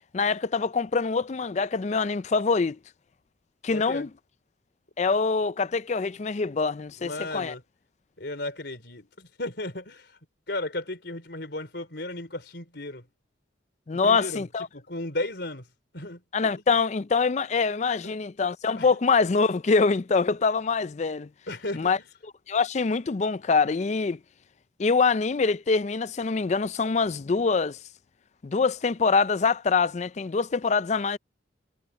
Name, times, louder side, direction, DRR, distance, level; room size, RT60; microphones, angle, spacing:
voice 1, 0.1-2.8 3.6-4.1 5.0-7.5 13.9-14.7 16.3-21.3 21.7-22.0 22.5-24.2 24.8-27.8 28.4-31.2, left 4 dB, 35° left, 0.4 m, -24 dB
voice 2, 3.7-4.1 7.0-7.6 8.2-10.2 10.5-13.1 13.9-14.5 14.7-15.7 15.9-16.2 16.5-16.6 18.0-18.1 18.8-19.0 21.5-22.1, left 2 dB, 60° left, 4.6 m, -35 dB
head